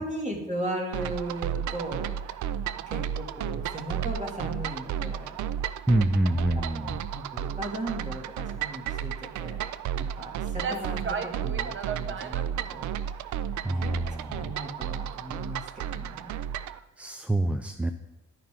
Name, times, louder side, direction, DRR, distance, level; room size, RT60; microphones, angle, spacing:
voice 1, 0.0-2.4 2.9-5.4 6.3-6.9 7.1-9.6 9.9-13.1 13.6-14.0 14.3-16.3, right 1 dB, 25° right, 0 dB, 2.8 m, -37 dB
sound 1, 0.9-16.8, right 10 dB, 75° right, 0.5 m, -33 dB
voice 2, 5.9-7.1 13.6-14.5 16.7-17.9, right 1 dB, 5° right, 6 dB, 0.5 m, -27 dB
sound 2, 10.2-10.3 10.5-12.5, right 5 dB, 40° right, 0.8 m, -34 dB
12.0 x 9.5 x 3.9 m, 1.0 s
cardioid pair, 90°, 30 cm